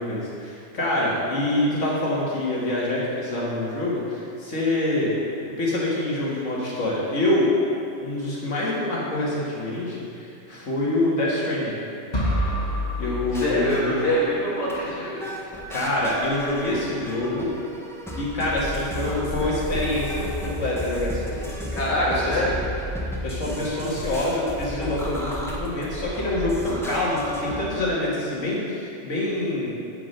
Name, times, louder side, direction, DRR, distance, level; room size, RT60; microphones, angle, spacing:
voice 1, 0.0-5.2 5.6-7.5 8.0-11.8 13.0-14.0 15.7-17.5 18.2-21.8 22.1-22.5 23.2-29.7, left 1 dB, 85° left, -6 dB, 2.1 m, -26 dB
sound 1, 12.1-14.2, equal, 35° left, 1.4 m, -27 dB
voice 2, 13.0-15.3 21.7-22.5, equal, 65° left, -7 dB, 2.0 m, -25 dB
sound 2, 13.1-14.4 14.7-14.8 15.2-27.7, equal, ahead, 0.8 m, -33 dB
8.3 x 4.9 x 5.4 m, 2.5 s
omnidirectional pair, 1.2 m